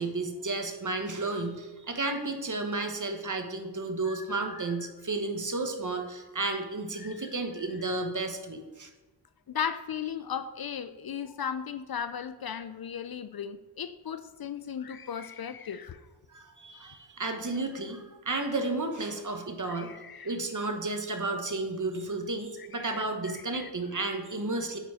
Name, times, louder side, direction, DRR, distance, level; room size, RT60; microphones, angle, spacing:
voice 1, 0.0-8.9 16.3-19.9 20.2-24.8, right 2 dB, 40° right, 5 dB, 1.2 m, -32 dB
voice 2, 4.0-4.7 7.0-7.3 9.5-16.0 19.6-20.3 22.7-23.7, left 7 dB, 55° left, 12 dB, 0.5 m, -37 dB
9.2 x 4.0 x 4.8 m, 1.1 s
cardioid pair, 40°, 45 cm